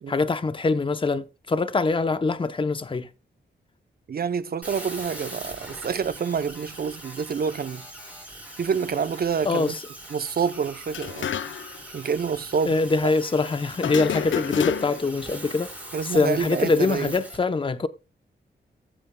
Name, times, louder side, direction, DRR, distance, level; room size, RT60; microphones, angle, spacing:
voice 1, 0.1-3.1 9.4-9.7 12.7-15.7 16.1-17.9, left 3 dB, 25° left, 0.7 m, -24 dB
voice 2, 4.1-7.9 8.6-9.7 10.1-11.3 11.9-12.8 13.0-13.1 15.9-17.1, right 6 dB, 55° right, 0.6 m, -27 dB
sound 1, 4.6-17.4, right 1 dB, 5° right, 5.3 m, -42 dB
sound 2, 10.9-11.8 12.1-12.2 13.8-15.2, left 9 dB, 90° left, 0.6 m, -29 dB
15.0 x 8.7 x 2.2 m
wide cardioid pair, 90°, 19 cm